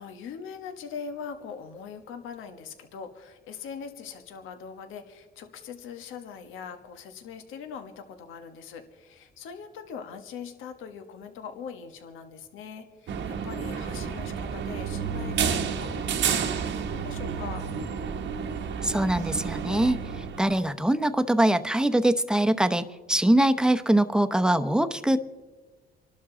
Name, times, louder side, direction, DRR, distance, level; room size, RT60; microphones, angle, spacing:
voice 1, 0.0-17.6, left 6 dB, 90° left, 7 dB, 1.2 m, -41 dB
sound 1, 13.1-20.6, right 7 dB, 70° right, 1.1 m, -30 dB
voice 2, 18.8-25.2, right 1 dB, 5° right, 9 dB, 0.8 m, -23 dB
27.5 x 12.0 x 3.8 m, 1.4 s
cardioid pair, 90°, 20 cm